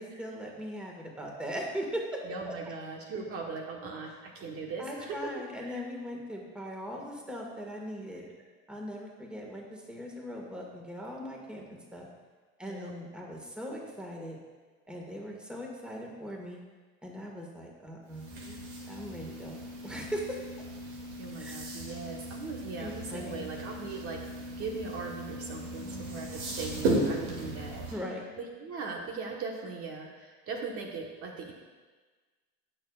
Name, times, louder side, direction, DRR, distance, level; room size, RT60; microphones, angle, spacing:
voice 1, 0.0-2.2 2.5-2.6 4.8-8.3 8.7-12.1 12.6-14.4 14.9-16.6 17.0-18.6 18.9-20.4 21.4-21.6 22.8-23.4 27.9-28.2, equal, 5° right, -1 dB, 1.8 m, -39 dB
voice 2, 2.3-5.3 5.6-5.8 12.6-12.9 21.2-24.2 24.5-27.8 28.4-31.5, right 4 dB, 50° right, 0 dB, 1.3 m, -39 dB
sound 1, 18.1-27.9, right 1 dB, 85° right, 2.5 m, -36 dB
18.0 x 6.6 x 2.4 m, 1.4 s
supercardioid pair, 115°, 30 cm